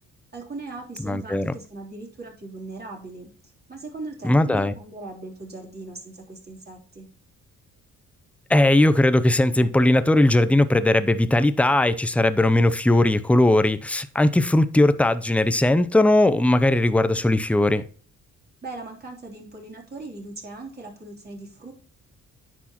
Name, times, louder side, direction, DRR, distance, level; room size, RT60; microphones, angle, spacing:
voice 1, 0.3-3.3 3.7-7.1 18.6-21.7, right 3 dB, 30° right, 3.5 m, -39 dB
voice 2, 1.0-1.5 4.2-4.7 8.5-17.8, left 1 dB, 5° left, 0.6 m, -19 dB
10.0 x 6.2 x 3.0 m
cardioid pair, 90°, 30 cm